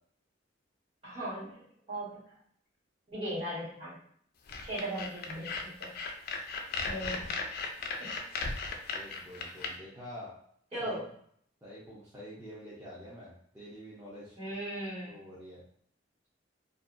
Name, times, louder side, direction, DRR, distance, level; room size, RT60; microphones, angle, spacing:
voice 1, 1.0-2.4 3.1-4.0 4.6-5.9 6.8-7.4 8.0-8.1 10.7-11.0 14.4-15.1, right 1 dB, 35° right, -8 dB, 1.4 m, -38 dB
sound 1, 4.5-9.7, left 4 dB, 55° left, 0.3 m, -36 dB
voice 2, 8.9-10.3 10.8-11.0 11.6-14.4 15.1-15.6, equal, 15° right, -9 dB, 0.6 m, -47 dB
2.6 x 2.2 x 2.4 m, 0.63 s
head